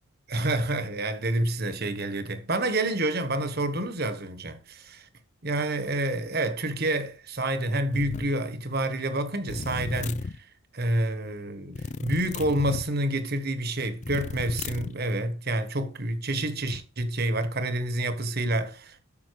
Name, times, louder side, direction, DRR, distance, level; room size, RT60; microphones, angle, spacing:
voice 1, 0.3-5.1 5.4-10.3 10.7-19.0, right 1 dB, 45° right, 1.4 m, -28 dB
sound 1, 7.9-8.3 9.5-10.4 11.7-12.9 14.0-15.0, left 3 dB, 35° left, 0.4 m, -34 dB
12.5 x 5.9 x 4.8 m
head